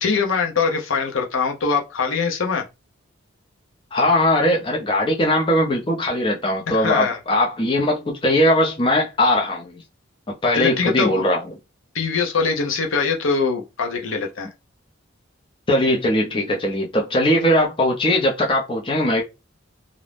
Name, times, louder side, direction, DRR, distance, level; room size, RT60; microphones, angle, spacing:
voice 1, 0.0-2.6 6.7-7.2 10.5-11.3 11.9-14.5, left 5 dB, 75° left, 0.6 m, -22 dB
voice 2, 3.9-9.8 10.4-11.4 15.7-19.2, left 1 dB, 25° left, 0.5 m, -20 dB
2.5 x 2.0 x 3.2 m
head